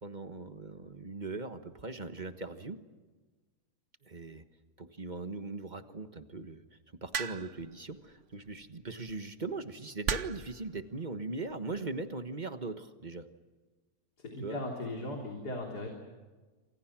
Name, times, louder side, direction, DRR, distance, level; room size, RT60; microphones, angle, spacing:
voice 1, 0.0-2.8 4.0-4.4 4.8-6.6 7.0-13.2 14.4-14.6, right 3 dB, 30° right, 9 dB, 1.4 m, -40 dB
sound 1, 7.1-7.7 8.9-9.1 10.1-10.5 11.5-11.8, right 6 dB, 50° right, 1.3 m, -34 dB
voice 2, 14.2-15.9, left 1 dB, 90° left, 1 dB, 4.1 m, -38 dB
28.5 x 26.5 x 6.1 m, 1.3 s
omnidirectional pair, 1.7 m